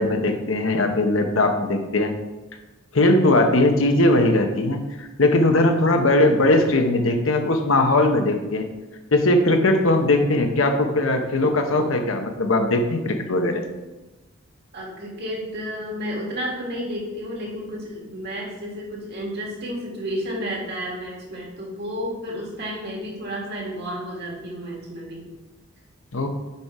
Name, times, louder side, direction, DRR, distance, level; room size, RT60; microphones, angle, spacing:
voice 1, 0.0-2.1 2.9-8.6 9.1-13.6 26.1-26.3, left 2 dB, 75° left, 5 dB, 1.0 m, -19 dB
voice 2, 14.7-25.3, equal, 55° right, -2 dB, 2.1 m, -31 dB
6.9 x 5.2 x 4.7 m, 1.1 s
head